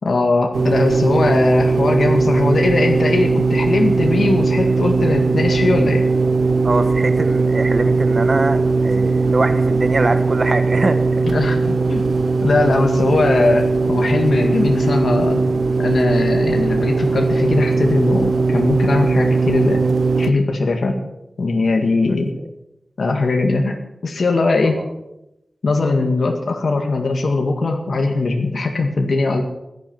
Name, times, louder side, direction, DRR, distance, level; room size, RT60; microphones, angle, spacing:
voice 1, 0.0-6.0 11.3-12.0 12.4-15.4 15.8-19.8 20.2-21.0 21.4-22.3 23.0-23.8 24.0-24.8 25.6-29.4, left 3 dB, 80° left, 3 dB, 1.9 m, -19 dB
sound 1, 0.5-20.3, right 4 dB, 75° right, 0.8 m, -18 dB
voice 2, 6.6-11.0 11.4-11.5 24.6-24.9, right 2 dB, 50° right, 8 dB, 1.5 m, -22 dB
16.0 x 11.0 x 6.1 m, 0.87 s
wide cardioid pair, 100°, 0 cm